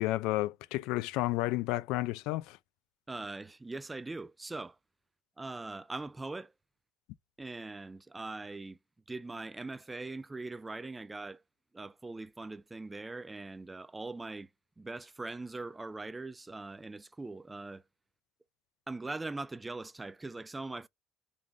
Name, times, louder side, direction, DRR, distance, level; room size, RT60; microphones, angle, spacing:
voice 1, 0.0-2.6, left 18 dB, 80° left, 0.4 m, -31 dB
voice 2, 3.1-4.8 5.4-6.5 7.4-8.8 9.1-11.4 11.7-14.5 14.8-17.8 18.9-20.9, right 3 dB, 15° right, 0.3 m, -41 dB
3.8 x 2.5 x 4.5 m
cardioid pair, 105°, 0 cm